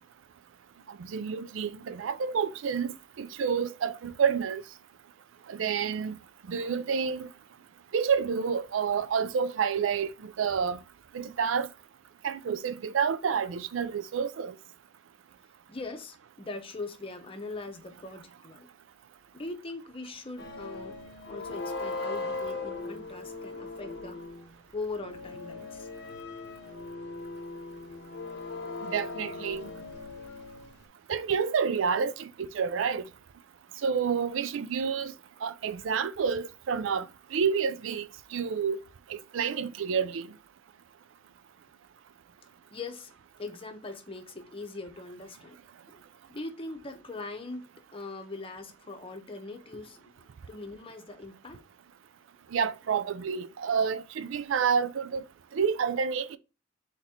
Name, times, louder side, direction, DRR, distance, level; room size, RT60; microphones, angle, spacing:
voice 1, 0.9-4.6 5.5-6.2 6.5-7.3 7.9-10.8 11.1-11.7 12.2-14.6 28.8-29.6 31.1-33.1 33.8-35.1 35.4-38.8 39.1-40.3 52.5-55.2 55.5-56.4, right 6 dB, 80° right, 0.4 m, -29 dB
voice 2, 15.7-18.7 19.3-21.0 21.3-24.2 24.7-25.9 42.7-43.1 43.4-45.6 45.9-46.0 46.3-47.7 47.9-51.6, left 3 dB, 30° left, 0.8 m, -41 dB
sound 1, 20.4-24.5 24.9-30.8, left 3 dB, 60° left, 0.8 m, -39 dB
4.0 x 4.0 x 2.8 m
head